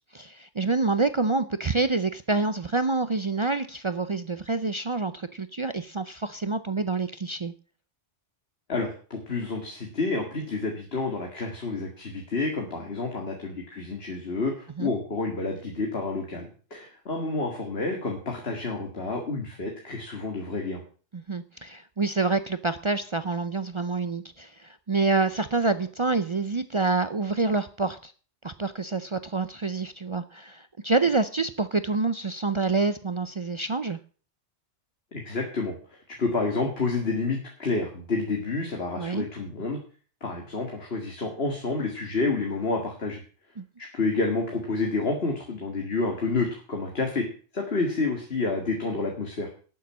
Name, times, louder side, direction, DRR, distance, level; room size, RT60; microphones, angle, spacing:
voice 1, 0.1-7.5 14.8-14.9 21.1-28.1 28.4-34.0 39.0-39.2 43.6-43.7, right 3 dB, 40° right, 12 dB, 0.5 m, -27 dB
voice 2, 8.7-14.5 14.8-20.8 35.1-35.7 36.2-39.8 40.2-43.2 43.9-47.3 47.5-49.5, left 3 dB, 60° left, 1 dB, 2.2 m, -29 dB
11.5 x 7.1 x 7.4 m, 0.41 s
omnidirectional pair, 1.2 m